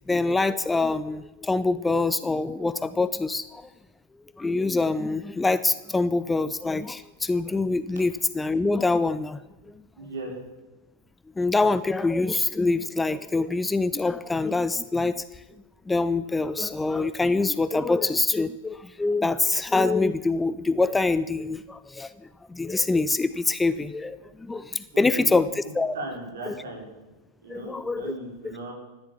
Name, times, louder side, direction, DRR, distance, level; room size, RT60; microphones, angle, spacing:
voice 1, 0.0-3.6 4.4-9.4 11.4-15.2 15.9-22.1 22.5-25.9 26.5-26.6 27.5-28.1, left 3 dB, 10° left, 15 dB, 0.5 m, -25 dB
voice 2, 10.0-10.3 24.9-25.4 25.9-26.9 27.4-28.7, right 2 dB, 60° right, 0 dB, 5.4 m, -37 dB
15.0 x 12.0 x 7.0 m, 1.1 s
figure-of-eight pair, 90°, 0 cm